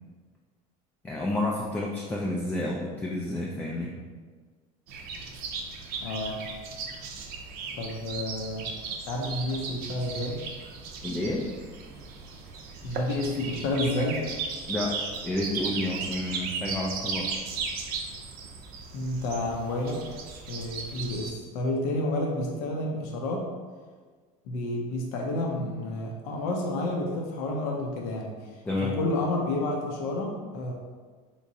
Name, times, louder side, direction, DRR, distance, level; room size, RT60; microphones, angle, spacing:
voice 1, 1.0-3.9 11.0-11.5 14.7-15.0 15.2-17.3 28.6-29.0, left 1 dB, 10° left, -3 dB, 0.3 m, -30 dB
sound 1, 4.9-21.3, right 4 dB, 55° right, 0.5 m, -36 dB
voice 2, 6.0-6.4 7.7-8.7 9.1-10.4 12.8-14.2 18.9-20.0 20.5-23.5 24.5-28.5 29.0-30.7, left 1 dB, 80° left, 0 dB, 0.6 m, -30 dB
3.5 x 3.0 x 2.7 m, 1.5 s
supercardioid pair, 120°, 18 cm